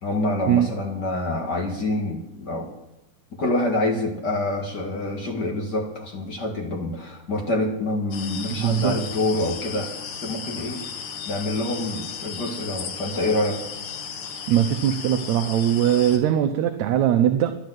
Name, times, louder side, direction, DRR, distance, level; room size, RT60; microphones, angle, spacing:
voice 1, 0.0-2.7 3.4-9.9 10.2-10.8 11.3-13.7, left 1 dB, 40° left, 1 dB, 1.9 m, -26 dB
sound 1, 8.1-16.2, left 7 dB, 75° left, 2.7 m, -35 dB
voice 2, 8.6-9.0 14.5-17.5, right 10 dB, 75° right, 7 dB, 1.9 m, -20 dB
12.0 x 10.5 x 7.9 m, 0.89 s
omnidirectional pair, 3.6 m